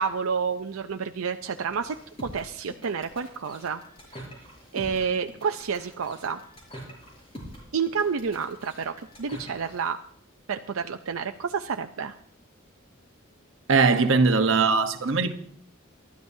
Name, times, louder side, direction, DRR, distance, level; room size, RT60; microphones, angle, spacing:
voice 1, 0.0-2.0 2.3-3.8 4.1-4.2 4.7-6.4 7.7-10.0 10.5-12.1, right 6 dB, 90° right, 0.6 m, -29 dB
sound 1, 1.6-9.9, equal, 30° left, 5.7 m, -45 dB
voice 2, 13.7-15.3, right 4 dB, 65° right, 1.0 m, -20 dB
28.5 x 12.5 x 2.7 m
head